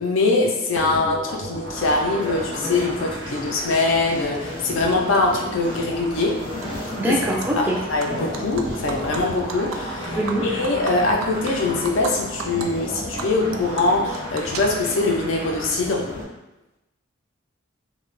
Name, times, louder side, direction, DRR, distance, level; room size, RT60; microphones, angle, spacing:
voice 1, 0.0-6.3 7.0-7.2 7.6-16.1, left 3 dB, 70° left, 0 dB, 0.4 m, -23 dB
sound 1, 0.8-16.2, right 1 dB, 75° right, 1.0 m, -36 dB
Animal, 0.8-0.9 1.9-2.0 2.2-3.1 3.5-5.2 5.5-5.8 6.1-6.9 7.2-7.5 7.8-12.1 12.4-12.7 13.0-15.1, right 6 dB, 90° right, 0.3 m, -36 dB
sound 2, 1.7-16.2, left 1 dB, 25° left, 0.7 m, -34 dB
voice 2, 7.0-7.8 10.2-10.4, right 1 dB, 10° right, -3 dB, 0.3 m, -23 dB
2.1 x 2.0 x 3.0 m, 0.96 s
head